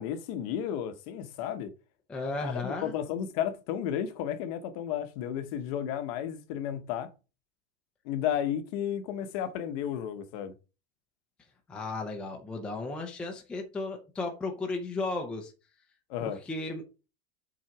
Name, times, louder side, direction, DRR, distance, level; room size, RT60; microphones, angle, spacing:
voice 1, 0.0-1.7 2.4-7.1 8.0-10.5 16.1-16.4, left 9 dB, 35° left, 0.9 m, -33 dB
voice 2, 2.1-2.9 11.7-15.5 16.3-16.8, left 3 dB, 5° left, 0.5 m, -34 dB
7.6 x 3.8 x 5.8 m
supercardioid pair, 180°, 30 cm